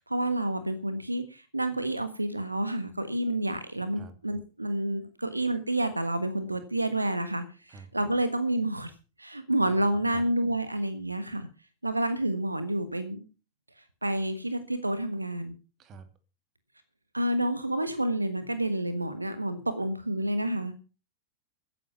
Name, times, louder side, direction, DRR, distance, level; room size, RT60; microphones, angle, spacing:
voice 1, 0.0-8.9 9.2-11.5 11.8-13.2 14.0-15.6 17.1-20.7, right 1 dB, 85° right, 11 dB, 1.4 m, -29 dB
voice 2, 9.6-10.2 15.8-16.1, right 4 dB, 30° right, 10 dB, 2.7 m, -48 dB
14.5 x 10.0 x 5.7 m, 0.34 s
figure-of-eight pair, 90°, 0 cm